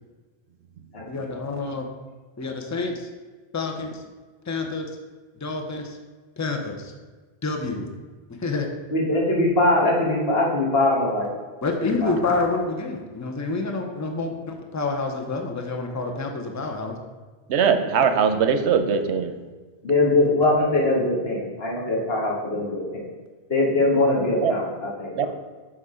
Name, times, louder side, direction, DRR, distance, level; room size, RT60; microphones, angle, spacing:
voice 1, 1.1-1.9 2.4-3.1 3.5-4.0 4.5-4.9 5.4-6.0 6.4-6.9 7.4-7.9 8.4-8.7 11.6-16.9, left 3 dB, 20° left, 3 dB, 0.6 m, -28 dB
voice 2, 8.9-11.3 11.8-12.1 19.8-23.0 23.5-25.3, left 2 dB, 65° left, -3 dB, 1.7 m, -22 dB
voice 3, 17.5-19.4 24.4-24.6 25.2-25.3, right 6 dB, 85° right, 8 dB, 0.9 m, -21 dB
6.8 x 3.7 x 4.9 m, 1.4 s
omnidirectional pair, 1.1 m